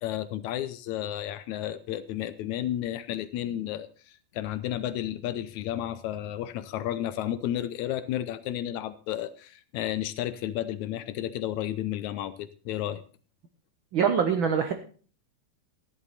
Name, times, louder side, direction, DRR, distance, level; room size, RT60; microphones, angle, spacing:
voice 1, 0.0-3.9 4.3-13.0, left 12 dB, 75° left, 13 dB, 2.0 m, -32 dB
voice 2, 13.9-14.7, right 7 dB, 85° right, 7 dB, 1.1 m, -24 dB
14.5 x 11.0 x 4.1 m, 0.39 s
omnidirectional pair, 3.6 m